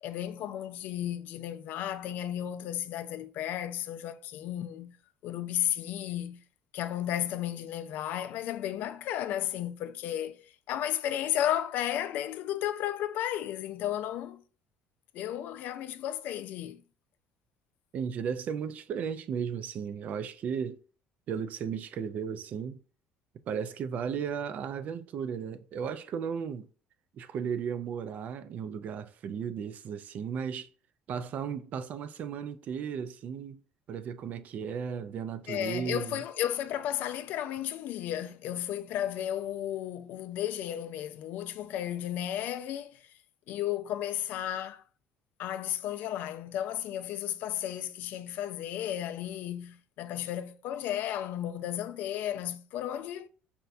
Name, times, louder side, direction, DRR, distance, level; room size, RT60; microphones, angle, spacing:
voice 1, 0.0-5.0 5.2-6.4 6.7-14.4 15.1-16.8 35.5-43.1 43.5-44.8 45.4-53.3, left 11 dB, 65° left, 0.3 m, -33 dB
voice 2, 17.9-20.8 21.3-22.8 23.5-26.7 27.1-30.7 31.1-33.6 33.9-36.2, right 7 dB, 50° right, 0.3 m, -35 dB
4.1 x 2.2 x 2.4 m
supercardioid pair, 95°, 3 cm